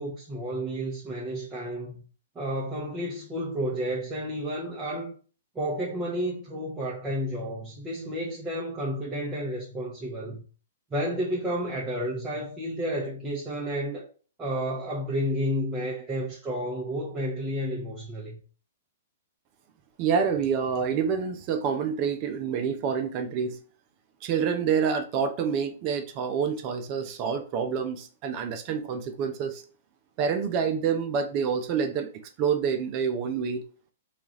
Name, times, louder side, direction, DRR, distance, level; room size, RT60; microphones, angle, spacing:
voice 1, 0.0-2.0 2.3-5.1 5.5-10.4 10.9-14.1 14.4-18.4, equal, 15° right, 0.9 m, -31 dB
voice 2, 20.0-23.6 24.2-29.6 30.2-32.1 32.4-33.6, right 6 dB, 40° right, 0.6 m, -27 dB
3.0 x 2.4 x 4.0 m
hypercardioid pair, 130°, 0 cm